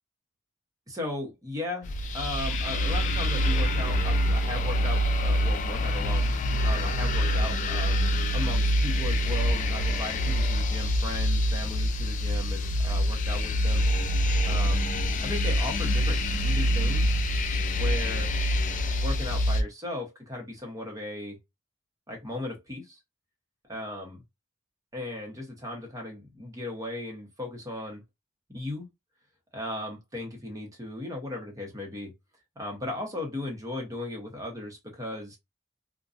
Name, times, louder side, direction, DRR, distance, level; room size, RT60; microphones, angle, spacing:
voice 1, 0.9-8.1 8.3-13.8 14.4-14.9 15.2-17.2 17.7-18.3 19.0-21.4 22.1-23.0 23.7-24.2 24.9-28.0 28.5-28.9 29.5-32.1 32.6-35.4, left 1 dB, 20° right, 0.9 m, -37 dB
sound 1, 1.8-19.6, equal, 40° left, 0.3 m, -25 dB
2.6 x 2.2 x 2.4 m
head